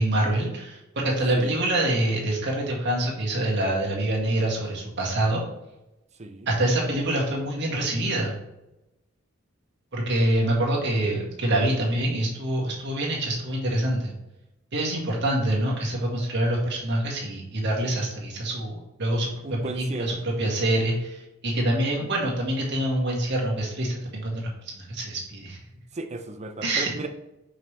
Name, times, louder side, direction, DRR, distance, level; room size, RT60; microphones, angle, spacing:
voice 1, 0.0-5.4 6.5-8.4 9.9-14.1 14.7-25.6 26.6-26.9, right 1 dB, 60° right, -3 dB, 1.9 m, -26 dB
voice 2, 1.3-1.6 6.1-6.5 19.4-20.2 25.9-27.1, right 2 dB, 35° right, 7 dB, 0.6 m, -35 dB
5.4 x 5.3 x 3.3 m, 0.92 s
head